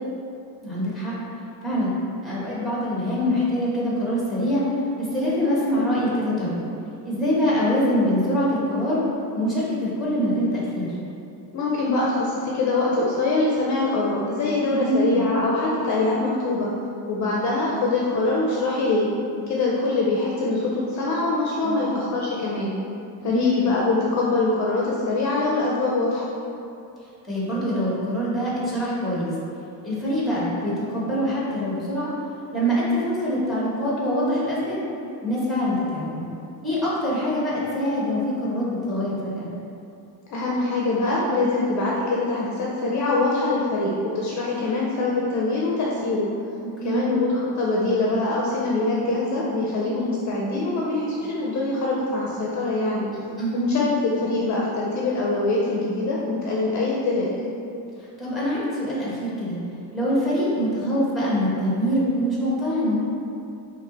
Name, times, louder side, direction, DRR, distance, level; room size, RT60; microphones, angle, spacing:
voice 1, 0.6-1.1 1.6-1.9 2.2-4.6 5.0-6.6 7.0-9.0 9.3-11.0 14.7-15.3 21.6-21.9 23.2-23.5 27.2-29.3 29.8-32.1 32.5-34.8 35.2-36.2 36.6-39.5 46.8-47.1 53.4-53.7 58.0-59.6 59.9-63.0, equal, ahead, -7 dB, 1.2 m, -24 dB
voice 2, 11.5-16.7 17.1-19.1 19.5-22.8 23.2-26.3 40.3-46.3 46.8-53.1 53.5-57.3, left 2 dB, 45° left, -4 dB, 0.6 m, -24 dB
4.6 x 2.9 x 3.9 m, 2.7 s
cardioid pair, 150°, 41 cm